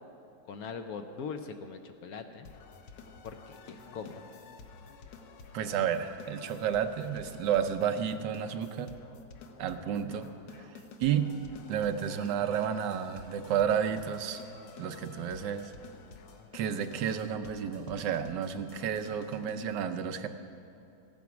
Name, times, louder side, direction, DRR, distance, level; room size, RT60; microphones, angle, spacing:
voice 1, 0.4-2.5 3.2-4.3, left 5 dB, 65° left, 7 dB, 1.1 m, -41 dB
sound 1, 2.5-19.6, left 5 dB, 85° left, 1.5 m, -51 dB
voice 2, 5.5-8.9 9.6-10.3 10.6-10.7 11.0-11.3 11.7-14.4 14.8-15.7 16.5-20.3, right 8 dB, 80° right, 9 dB, 1.3 m, -31 dB
15.0 x 9.4 x 5.9 m, 2.7 s
omnidirectional pair, 1.9 m